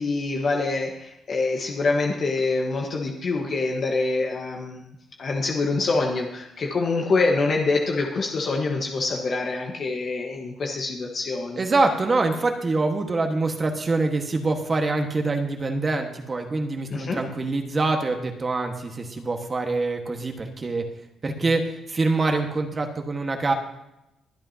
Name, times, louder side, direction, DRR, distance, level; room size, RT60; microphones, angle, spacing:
voice 1, 0.0-4.9 5.2-11.6 16.9-17.2, left 3 dB, 50° left, 1 dB, 1.4 m, -25 dB
voice 2, 11.6-20.8 21.2-23.5, right 3 dB, 35° right, 3 dB, 1.6 m, -25 dB
22.5 x 8.8 x 2.9 m, 0.91 s
cardioid pair, 90°, 0 cm